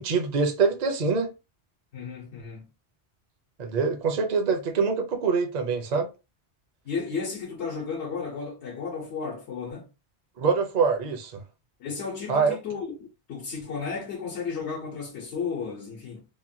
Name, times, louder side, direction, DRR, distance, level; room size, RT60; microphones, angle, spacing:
voice 1, 0.0-1.3 3.6-6.1 10.4-11.4 12.3-12.6, right 5 dB, 50° right, 0.6 m, -24 dB
voice 2, 1.9-2.7 6.8-9.9 11.8-12.9 13.3-16.2, left 5 dB, 85° left, 1.1 m, -33 dB
3.0 x 2.2 x 2.6 m
omnidirectional pair, 1.1 m